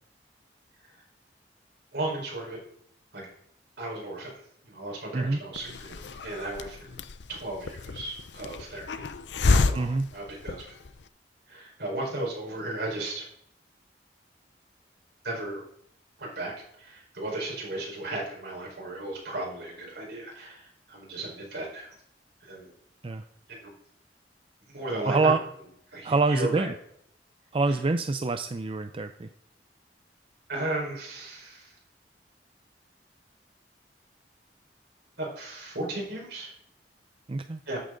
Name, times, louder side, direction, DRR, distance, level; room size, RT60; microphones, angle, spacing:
voice 1, 1.9-2.6 3.1-3.3 3.8-4.3 4.6-7.0 7.3-9.1 9.4-10.7 11.5-13.2 15.2-15.6 16.2-16.5 16.8-21.9 22.4-22.7 23.5-23.7 24.7-25.3 25.9-26.7 30.5-31.7 35.2-36.5 37.7-37.8, right 2 dB, 70° right, -2 dB, 4.9 m, -35 dB
Hiss, 5.5-11.0, left 3 dB, 80° left, 0.6 m, -30 dB
voice 2, 9.7-10.1 23.0-23.2 25.0-25.4 26.0-26.7 27.5-29.3 37.3-37.6, right 3 dB, 30° right, 9 dB, 0.5 m, -26 dB
14.5 x 8.7 x 3.9 m, 0.70 s
head